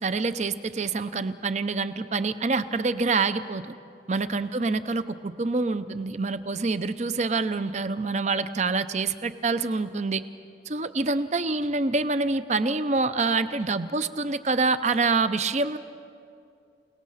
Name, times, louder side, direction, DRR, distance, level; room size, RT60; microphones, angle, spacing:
voice 1, 0.0-3.7 4.1-10.2 10.7-15.8, right 3 dB, 40° right, 12 dB, 0.6 m, -26 dB
29.0 x 18.5 x 5.7 m, 2.4 s
head